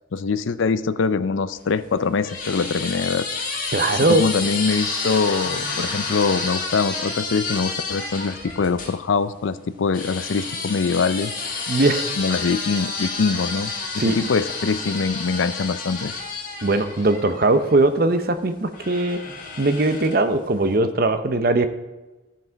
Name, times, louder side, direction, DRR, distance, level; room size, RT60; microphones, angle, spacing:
voice 1, 0.1-3.3 3.9-11.3 12.2-16.1, left 5 dB, 85° left, 14 dB, 0.5 m, -23 dB
sound 1, 1.6-9.0 9.9-17.8 18.7-20.3, left 4 dB, 45° left, 1.7 m, -30 dB
voice 2, 3.7-4.3 11.7-12.1 14.0-14.2 16.6-19.2 19.6-21.7, right 2 dB, 50° right, 9 dB, 0.7 m, -20 dB
14.5 x 5.9 x 4.6 m, 1.1 s
head